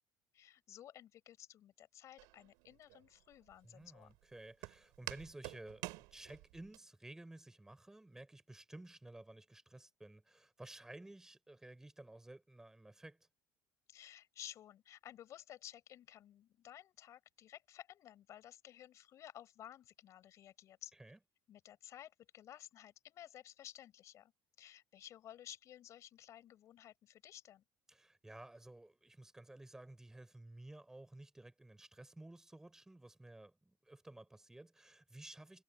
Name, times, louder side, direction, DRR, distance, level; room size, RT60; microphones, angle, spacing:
voice 1, 0.3-4.1 13.9-20.9 21.5-24.3 24.6-27.6, left 11 dB, 50° left, 6.3 m, -55 dB
Walk footsteps, 2.2-6.8, right 24 dB, 85° right, 4.5 m, -50 dB
voice 2, 3.6-13.3 21.0-21.2 27.9-35.6, right 2 dB, 5° right, 3.8 m, -54 dB
cardioid pair, 130°, 7 cm